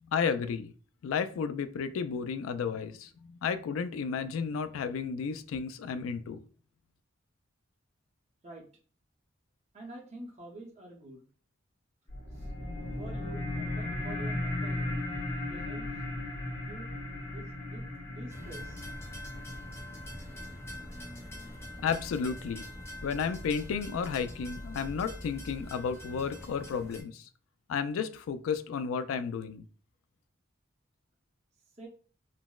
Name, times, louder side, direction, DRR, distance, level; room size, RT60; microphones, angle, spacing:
voice 1, 0.1-0.7 1.0-6.4 21.8-22.7 23.0-27.2 27.7-29.6, left 6 dB, 85° left, 11 dB, 0.3 m, -32 dB
voice 2, 9.7-11.3 12.3-12.5 13.0-15.0 15.4-16.0 16.6-16.9 17.3-18.8 21.1-21.8 31.8-31.9, right 2 dB, 35° right, -1 dB, 0.7 m, -48 dB
sound 1, 12.1-23.1, left 1 dB, 50° left, 1.4 m, -37 dB
sound 2, 18.3-27.0, left 1 dB, 15° left, 0.5 m, -44 dB
3.9 x 2.0 x 2.3 m, 0.41 s
head